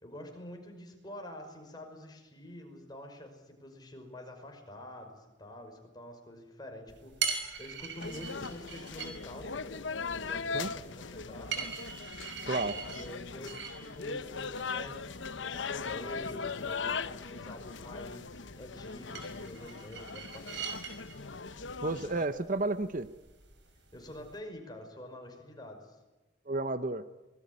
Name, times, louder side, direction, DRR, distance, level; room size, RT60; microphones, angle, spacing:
voice 1, 0.0-9.8 10.1-11.7 12.8-20.6 23.9-26.0, left 1 dB, 20° left, 3 dB, 5.5 m, -47 dB
sound 1, 6.9-24.4, right 6 dB, 65° right, 5.5 m, -43 dB
sound 2, 8.0-22.3, left 5 dB, 70° left, 0.9 m, -39 dB
voice 2, 12.5-12.8 21.8-23.1 26.5-27.0, right 2 dB, 45° right, 12 dB, 0.9 m, -31 dB
25.5 x 20.5 x 9.7 m, 1.1 s
head